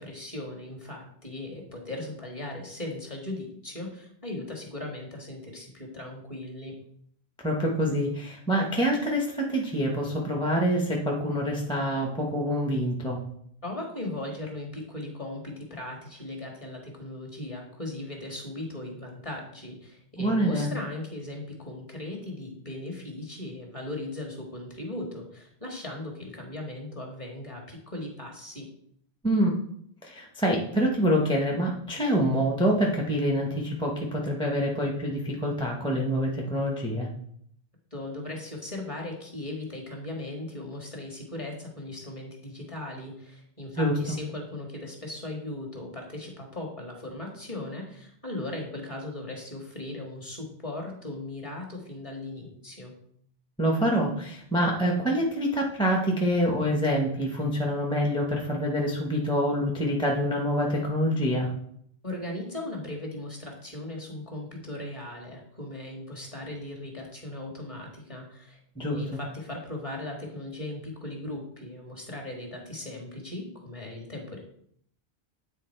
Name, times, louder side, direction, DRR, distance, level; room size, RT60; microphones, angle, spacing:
voice 1, 0.0-6.7 13.6-28.7 37.9-52.9 62.0-74.4, left 1 dB, 30° left, 0 dB, 1.8 m, -38 dB
voice 2, 7.4-13.2 20.2-20.7 29.2-29.6 30.0-37.1 43.7-43.9 53.6-61.5 68.8-69.0, equal, 5° left, -1 dB, 0.9 m, -26 dB
9.2 x 3.5 x 4.5 m, 0.67 s
omnidirectional pair, 1.1 m